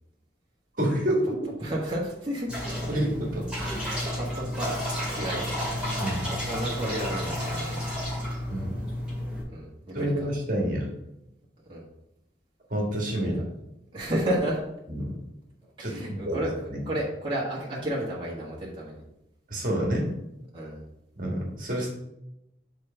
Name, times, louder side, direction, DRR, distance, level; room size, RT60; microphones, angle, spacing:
voice 1, 0.8-1.4 2.8-3.8 6.0-6.2 8.5-8.8 9.9-10.9 12.7-13.3 14.9-15.1 15.8-16.4 16.7-16.8 19.5-20.1 21.2-21.9, right 1 dB, 45° right, -1 dB, 1.7 m, -28 dB
voice 2, 1.6-2.5 3.5-5.6 6.2-7.8 9.5-10.3 11.7-11.8 13.1-13.3 13.9-14.6 15.6-16.5 16.8-19.0 20.5-20.8, right 1 dB, 30° right, -6 dB, 1.5 m, -32 dB
sound 1, 2.5-9.4, equal, 5° right, 2.3 m, -31 dB
6.4 x 4.1 x 5.6 m, 0.85 s
head